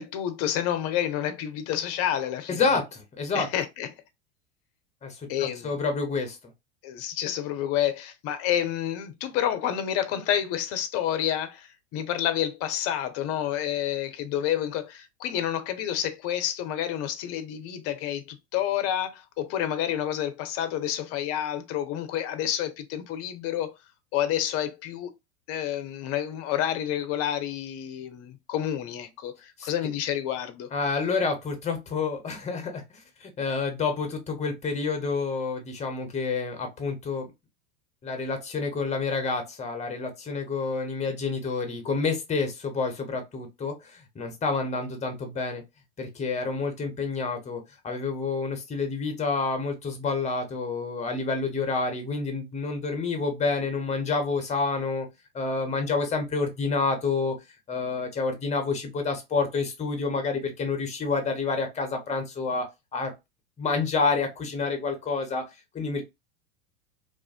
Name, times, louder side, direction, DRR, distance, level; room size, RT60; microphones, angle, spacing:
voice 1, 0.0-2.6 3.3-3.9 5.3-5.8 6.8-23.7 24.1-25.1 25.5-30.7, left 10 dB, 40° left, 0.6 m, -29 dB
voice 2, 2.5-3.5 5.0-6.4 29.6-29.7 30.7-37.3 38.0-45.6 46.0-55.1 55.3-57.4 57.7-62.7 62.9-63.1 63.6-65.5 65.7-66.0, left 4 dB, 20° left, 0.8 m, -28 dB
2.5 x 2.4 x 2.3 m
hypercardioid pair, 95°, 36 cm